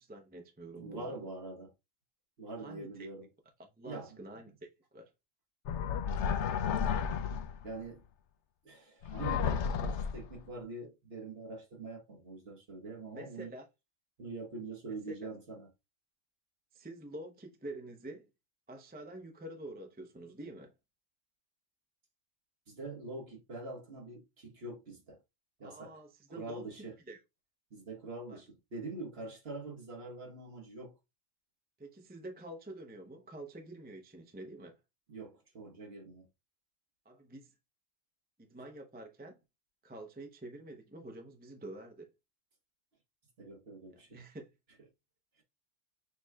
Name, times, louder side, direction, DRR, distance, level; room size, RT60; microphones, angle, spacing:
voice 1, 0.0-1.3 2.6-3.1 3.8-4.5 4.9-5.1 13.1-13.6 14.9-15.1 16.7-18.3 18.7-20.7 25.6-27.2 28.3-28.4 31.8-34.8 37.0-37.5 38.4-39.4 39.8-42.1 43.9-44.4, right 1 dB, 10° right, 0.5 m, -47 dB
voice 2, 0.8-1.7 2.4-3.3 3.8-4.2 7.6-8.0 8.6-13.5 14.2-15.7 22.7-25.2 25.6-25.9 26.3-26.9 27.7-31.0 35.1-36.2 43.4-44.2, right 3 dB, 50° right, 1.6 m, -44 dB
sound 1, 5.7-7.7 9.0-10.4, left 7 dB, 65° left, 0.8 m, -32 dB
6.6 x 3.1 x 2.3 m
omnidirectional pair, 1.3 m